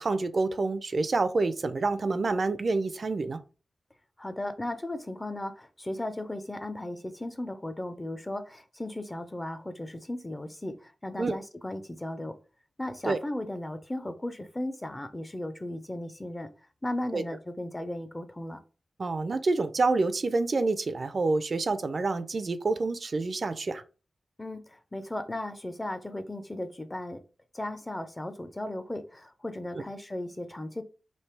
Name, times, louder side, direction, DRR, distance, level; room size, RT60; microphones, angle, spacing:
voice 1, 0.0-3.4 11.2-11.4 13.1-13.2 17.1-17.2 19.0-23.8 29.7-29.8, right 3 dB, 45° right, 0.4 m, -27 dB
voice 2, 4.2-12.4 12.8-16.5 16.8-18.6 24.4-27.2 27.5-30.8, left 1 dB, 15° left, 0.5 m, -36 dB
3.3 x 2.7 x 4.4 m
wide cardioid pair, 105°, 0 cm